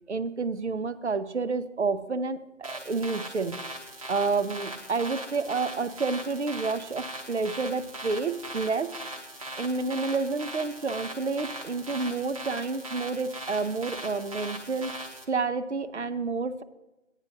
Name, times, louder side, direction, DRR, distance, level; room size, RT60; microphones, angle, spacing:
voice 1, 0.1-3.6 4.1-8.9 9.6-14.9 15.3-16.6, right 4 dB, 60° right, 13 dB, 0.7 m, -29 dB
sound 1, 2.6-15.3, right 1 dB, 25° right, 0.9 m, -40 dB
15.5 x 9.9 x 2.6 m, 1.0 s
figure-of-eight pair, 160°, 39 cm